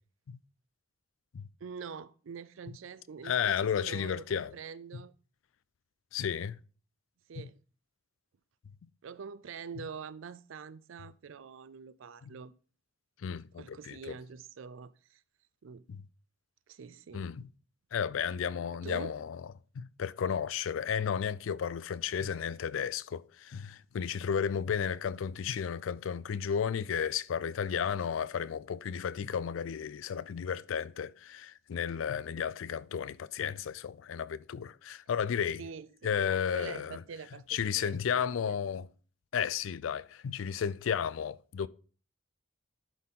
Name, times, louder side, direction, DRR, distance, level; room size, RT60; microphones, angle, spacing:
voice 1, 1.6-5.1 7.3-7.6 9.0-12.5 13.6-15.2 15.6-15.8 16.7-17.3 18.8-19.1 35.6-38.6, right 6 dB, 85° right, 0.4 m, -45 dB
voice 2, 3.2-4.5 4.9-5.0 6.1-6.6 7.4-7.5 12.2-12.3 13.2-14.2 15.9-16.0 17.1-17.5 17.9-19.4 19.8-35.6 36.0-37.0 37.5-38.9 39.3-41.7, left 7 dB, 85° left, 0.4 m, -33 dB
11.5 x 4.2 x 3.7 m
head